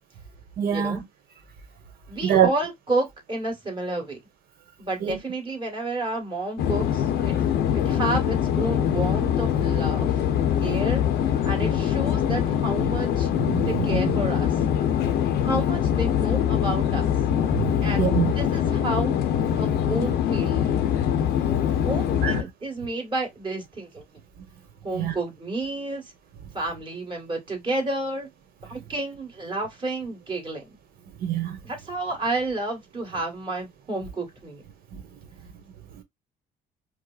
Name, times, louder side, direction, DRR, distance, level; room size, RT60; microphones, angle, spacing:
voice 1, 0.6-1.0 2.2-2.5 5.0-5.2 13.4-14.2 17.5-18.3 21.5-21.6 22.2-22.4 24.9-25.1 31.2-31.6 34.9-35.0, right 9 dB, 60° right, 1.2 m, -25 dB
voice 2, 2.1-4.2 4.8-7.4 7.7-10.2 10.6-13.3 13.6-14.6 15.4-17.1 17.8-19.1 19.6-20.8 21.8-24.0 24.8-26.0 26.5-28.3 28.6-30.7 31.6-34.6, right 2 dB, 30° right, 1.8 m, -30 dB
sound 1, 6.6-22.4, left 9 dB, 75° left, 0.7 m, -23 dB
4.7 x 2.1 x 2.5 m
cardioid pair, 110°, 17 cm